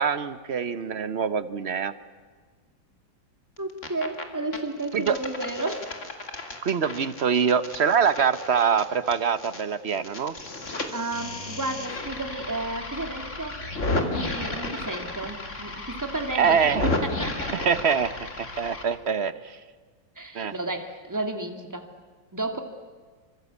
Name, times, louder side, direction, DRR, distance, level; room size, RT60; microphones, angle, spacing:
voice 1, 0.0-1.9 4.9-5.2 6.6-10.3 16.3-16.9 17.5-19.6 20.3-20.5, right 6 dB, 45° right, 13 dB, 0.9 m, -24 dB
sound 1, 3.6-4.2 4.5-9.6 9.9-18.8, left 2 dB, 35° left, 2.9 m, -33 dB
voice 2, 3.6-5.8 8.2-8.3 10.9-13.7 13.9-16.6 16.8-17.5 20.2-21.9 22.3-22.6, right 2 dB, 10° right, 5 dB, 2.5 m, -32 dB
27.0 x 25.5 x 8.4 m, 1.5 s
omnidirectional pair, 2.1 m